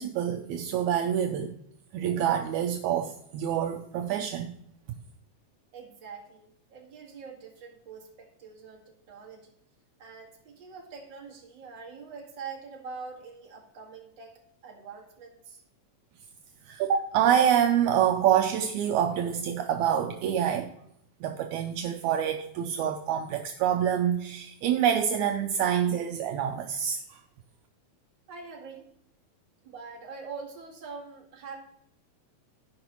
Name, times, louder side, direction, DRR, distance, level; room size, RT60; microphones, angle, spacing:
voice 1, 0.0-1.5 1.9-4.5 16.7-20.7 21.2-27.2, right 9 dB, 80° right, 5 dB, 1.9 m, -26 dB
voice 2, 5.7-9.5 10.0-15.6 28.3-28.9 29.6-31.6, right 5 dB, 40° right, -1 dB, 2.4 m, -44 dB
15.5 x 5.4 x 3.0 m, 0.75 s
omnidirectional pair, 3.5 m